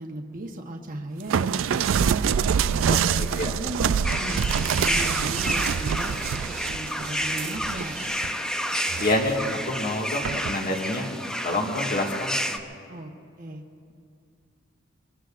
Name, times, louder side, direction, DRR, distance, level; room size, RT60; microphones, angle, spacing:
voice 1, 0.0-2.2 2.8-3.1 3.5-8.0 12.9-13.1 13.4-13.6, right 1 dB, 45° right, 1 dB, 1.1 m, -36 dB
sound 1, 1.3-8.3 8.7-9.4 10.2-10.6, right 7 dB, 75° right, 0.4 m, -26 dB
voice 2, 2.9-3.5 9.0-11.1 11.4-12.4, left 1 dB, 45° left, -1 dB, 1.9 m, -27 dB
sound 2, 4.0-12.6, equal, 5° left, 0.6 m, -30 dB
25.0 x 22.5 x 2.5 m, 2.3 s
head